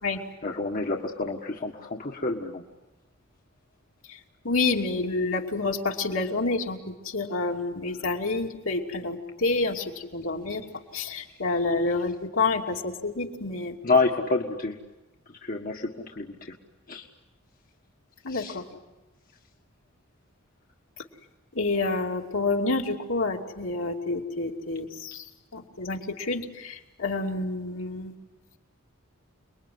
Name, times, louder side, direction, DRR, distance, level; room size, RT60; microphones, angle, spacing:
voice 1, 0.4-2.6 13.8-14.8 15.4-16.5 16.9-17.1 18.3-18.5, left 3 dB, 45° left, 1 dB, 1.6 m, -28 dB
voice 2, 4.4-10.6 10.9-13.7 18.2-18.6 21.5-25.3 25.5-28.1, left 3 dB, 70° left, 1 dB, 2.8 m, -28 dB
29.5 x 21.5 x 9.5 m, 1.1 s
head